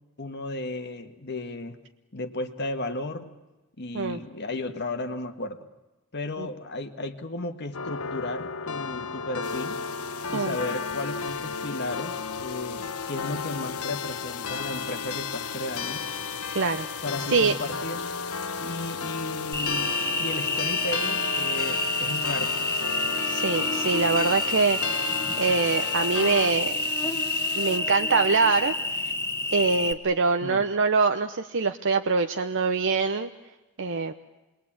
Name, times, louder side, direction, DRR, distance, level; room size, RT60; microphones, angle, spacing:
voice 1, 0.2-1.8 2.1-3.3 3.8-5.7 6.1-9.8 10.3-16.0 17.0-18.0 18.6-22.6 30.4-30.7, left 2 dB, 50° left, 7 dB, 1.7 m, -34 dB
sound 1, 7.7-26.5, left 5 dB, 70° left, 1.1 m, -34 dB
sound 2, 9.4-27.8, left 10 dB, 90° left, 1.4 m, -41 dB
voice 2, 16.5-16.9 17.3-17.5 23.3-25.1 25.4-26.8 27.6-29.0 29.5-33.3 33.8-34.1, right 4 dB, 55° right, 7 dB, 0.9 m, -24 dB
Cricket, 19.5-29.9, left 2 dB, 10° left, 1.3 m, -28 dB
27.5 x 21.5 x 8.8 m, 1.1 s
head